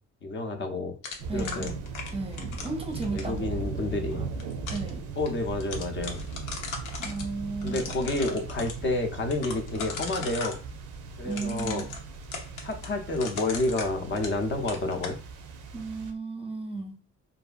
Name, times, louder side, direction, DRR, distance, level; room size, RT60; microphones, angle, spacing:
voice 1, 0.2-0.9 1.3-1.7 2.9-4.3 5.2-6.2 7.6-10.6 11.2-11.9 12.6-15.2, left 2 dB, 40° left, 5 dB, 0.5 m, -29 dB
sound 1, 1.0-3.4 4.2-4.9 5.3-5.4 5.6-7.2 7.6-8.7 9.3-10.6 11.3-14.4 14.7-15.2, left 4 dB, 90° left, 0.7 m, -38 dB
sound 2, 1.2-16.1, right 4 dB, 90° right, 0.5 m, -38 dB
voice 2, 1.3-1.7 2.1-3.6 4.1-4.2 4.7-5.0 7.0-7.9 11.2-11.9 15.7-16.9, right 3 dB, 20° right, 3 dB, 0.5 m, -34 dB
2.6 x 2.4 x 2.3 m, 0.37 s
cardioid pair, 90°, 30 cm